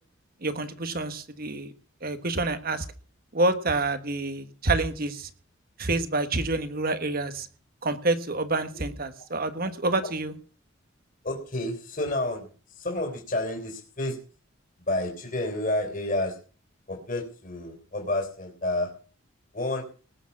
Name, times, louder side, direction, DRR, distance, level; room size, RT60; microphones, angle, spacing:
voice 1, 0.4-1.7 2.0-2.8 3.3-5.3 5.8-7.5 7.8-10.3, right 2 dB, 45° right, 10 dB, 1.4 m, -27 dB
voice 2, 11.2-14.2 14.8-16.4 16.9-18.9 19.5-19.8, left 1 dB, 40° left, 3 dB, 3.6 m, -30 dB
19.0 x 7.1 x 7.2 m, 0.40 s
head